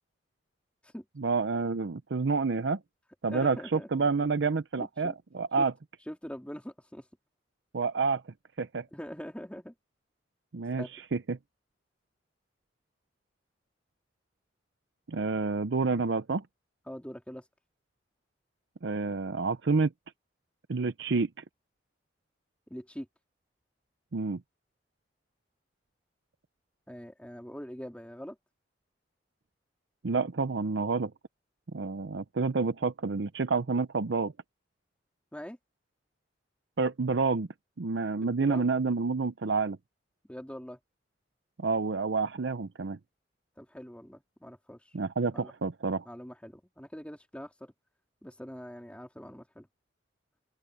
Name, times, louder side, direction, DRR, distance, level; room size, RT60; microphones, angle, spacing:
voice 1, 1.2-2.8 3.2-5.7 7.7-8.2 8.6-8.9 10.5-11.4 15.1-16.4 18.8-19.9 20.7-21.3 24.1-24.4 30.0-31.1 31.7-34.3 36.8-37.5 37.8-39.8 41.6-43.0 44.9-46.0, right 4 dB, 75° right, 0.6 m, -29 dB
voice 2, 3.3-4.1 4.8-5.1 5.6-5.7 6.1-7.1 8.9-9.7 10.7-10.9 16.9-17.4 22.7-23.1 26.9-28.4 35.3-35.6 38.3-38.7 40.3-40.8 43.6-44.9 45.3-45.5 46.0-47.7 48.2-49.7, equal, 5° left, 3.0 m, -43 dB
open air
head